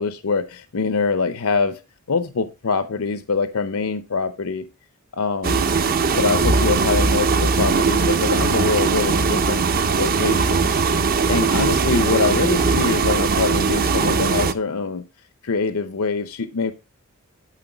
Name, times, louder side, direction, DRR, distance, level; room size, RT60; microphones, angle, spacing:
voice 1, 0.0-1.8 2.1-4.7 5.1-5.7 6.1-9.6 10.0-10.9 11.3-15.0 15.4-16.7, left 4 dB, 70° left, 11 dB, 0.7 m, -24 dB
sound 1, 5.4-14.5, right 4 dB, 40° right, 0.8 m, -20 dB
12.0 x 4.6 x 5.9 m, 0.28 s
head